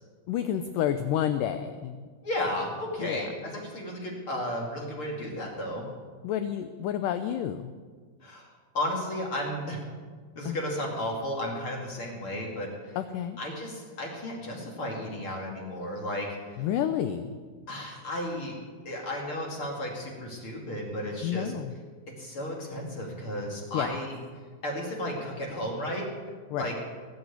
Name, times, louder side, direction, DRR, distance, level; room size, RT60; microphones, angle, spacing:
voice 1, 0.3-2.0 3.0-3.3 6.2-7.7 10.4-10.6 13.0-13.4 16.6-17.3 21.2-21.7 23.7-24.0 26.5-26.7, left 10 dB, 80° left, 9 dB, 1.9 m, -29 dB
voice 2, 2.2-5.9 8.2-8.4 8.7-9.8 10.4-13.0 13.4-16.3 17.7-18.5 18.8-21.5 22.2-24.2 24.6-26.1 26.6-26.7, left 1 dB, 40° left, -1 dB, 2.7 m, -33 dB
20.0 x 8.0 x 8.3 m, 1.6 s
omnidirectional pair, 4.5 m